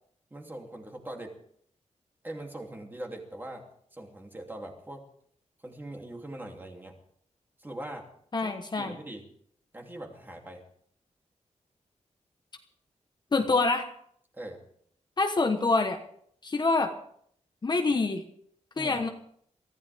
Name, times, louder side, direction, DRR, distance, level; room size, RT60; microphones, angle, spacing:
voice 1, 0.3-1.3 2.2-3.6 3.9-5.0 5.6-6.9 7.6-8.1 8.4-9.2 9.7-10.6 14.3-14.6 18.7-19.0, right 1 dB, 15° right, 1 dB, 2.9 m, -41 dB
voice 2, 8.3-8.9 13.3-13.9 15.2-16.0 16.4-16.9 17.6-18.2 18.8-19.1, left 3 dB, 35° left, 5 dB, 1.2 m, -26 dB
23.0 x 15.0 x 3.5 m, 0.65 s
wide cardioid pair, 170°, 12 cm